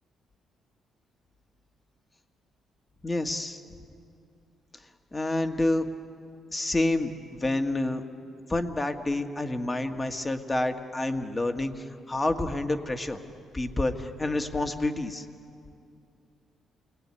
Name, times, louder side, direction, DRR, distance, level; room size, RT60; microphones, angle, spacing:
voice 1, 3.0-3.6 5.1-5.9 6.5-8.0 8.5-13.2 13.5-15.3, left 2 dB, 20° left, 6 dB, 1.8 m, -28 dB
29.0 x 21.0 x 9.8 m, 2.6 s
cardioid pair, 90°, 0 cm